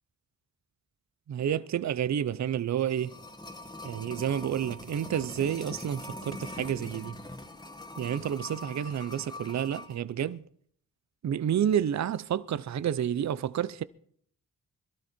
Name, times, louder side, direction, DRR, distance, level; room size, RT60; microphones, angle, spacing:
voice 1, 1.3-3.2 3.8-7.2 8.0-10.4 11.2-13.8, right 9 dB, 55° right, 0.6 m, -30 dB
sound 1, 2.6-10.0 10.3-10.4, left 2 dB, 10° left, 1.8 m, -43 dB
22.0 x 13.0 x 4.4 m
cardioid pair, 65°, 33 cm